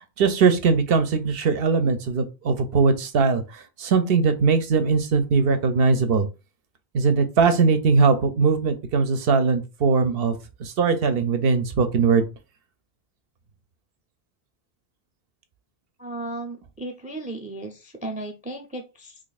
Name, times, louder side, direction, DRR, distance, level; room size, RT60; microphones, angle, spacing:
voice 1, 0.0-6.3 6.9-12.3, right 5 dB, 70° right, 9 dB, 0.8 m, -20 dB
voice 2, 16.0-19.2, right 2 dB, 10° right, 4 dB, 0.4 m, -35 dB
3.1 x 2.5 x 3.9 m, 0.29 s
omnidirectional pair, 1.0 m